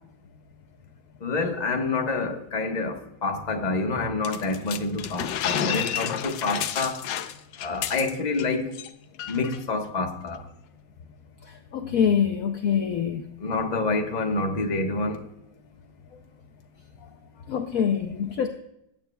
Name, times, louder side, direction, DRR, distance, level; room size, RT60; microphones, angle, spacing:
voice 1, 1.2-7.0 7.6-8.7 9.3-10.4 13.4-15.2, left 3 dB, 30° left, 1.0 m, -27 dB
sound 1, 4.2-8.5 8.7-8.9 9.2-9.6, left 10 dB, 85° left, 1.3 m, -30 dB
voice 2, 11.7-13.3 17.5-18.5, left 7 dB, 65° left, 0.9 m, -24 dB
15.5 x 9.2 x 2.2 m
omnidirectional pair, 1.9 m